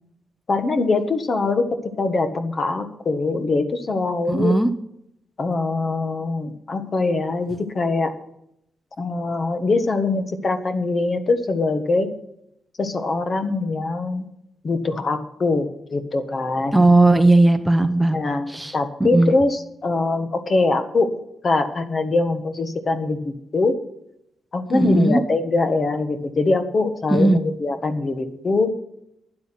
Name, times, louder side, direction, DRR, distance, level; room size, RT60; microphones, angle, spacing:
voice 1, 0.5-1.7 2.0-4.5 5.4-8.2 9.0-12.1 12.8-14.3 14.6-16.9 18.1-21.1 21.4-23.8 24.5-28.7, left 3 dB, 40° left, 8 dB, 1.5 m, -23 dB
voice 2, 4.3-4.7 16.7-18.2 18.5-18.7 19.0-19.3 24.7-25.2 27.1-27.4, right 2 dB, 10° right, 9 dB, 0.7 m, -16 dB
12.0 x 10.0 x 5.9 m, 0.77 s
cardioid pair, 130°, 0 cm